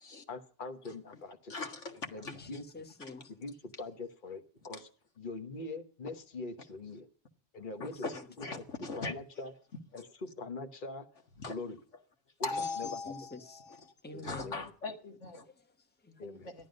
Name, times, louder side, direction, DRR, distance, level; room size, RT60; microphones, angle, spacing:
voice 1, 0.3-1.5 2.1-2.7 3.3-4.9 5.2-7.1 7.5-8.1 8.4-9.5 9.9-11.1 11.5-11.8 12.4-12.5 12.8-13.1 14.1-14.7 16.2-16.5, left 3 dB, 45° left, 1.5 m, -43 dB
voice 2, 1.5-2.4 7.8-9.1 11.4-11.6 12.4-13.8 14.2-15.5 16.2-16.5, left 3 dB, 80° left, 2.2 m, -40 dB
voice 3, 2.2-3.3 7.8-8.2 12.5-13.7 14.0-14.6 15.4-16.2, left 2 dB, 10° left, 1.3 m, -48 dB
13.5 x 11.5 x 5.3 m
omnidirectional pair, 1.2 m